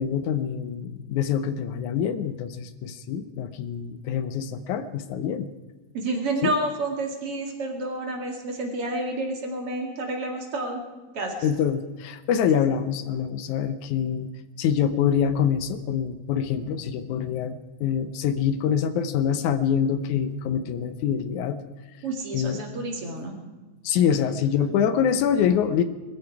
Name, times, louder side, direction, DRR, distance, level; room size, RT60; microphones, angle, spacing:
voice 1, 0.0-5.5 6.4-6.5 11.4-14.3 14.6-21.6 22.3-22.6 23.8-25.8, left 8 dB, 80° left, 11 dB, 2.2 m, -25 dB
voice 2, 5.9-10.8 11.1-11.5 22.0-23.4 24.1-24.2, right 2 dB, 50° right, 2 dB, 2.9 m, -29 dB
21.5 x 14.5 x 4.8 m, 1.2 s
omnidirectional pair, 3.5 m